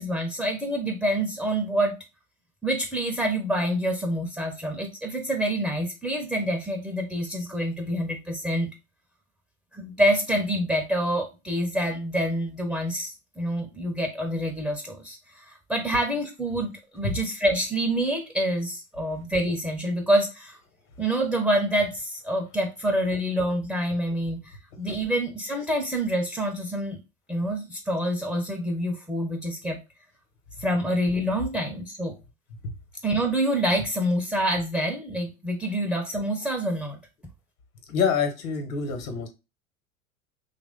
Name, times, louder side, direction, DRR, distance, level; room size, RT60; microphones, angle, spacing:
voice 1, 0.0-1.9 2.6-8.7 9.7-20.6 21.0-27.0 27.3-29.8 30.6-32.2 33.0-37.0, right 1 dB, ahead, 2 dB, 0.4 m, -27 dB
voice 2, 37.9-39.3, left 6 dB, 70° left, 7 dB, 1.1 m, -26 dB
3.0 x 2.5 x 3.6 m, 0.26 s
hypercardioid pair, 85°, 43 cm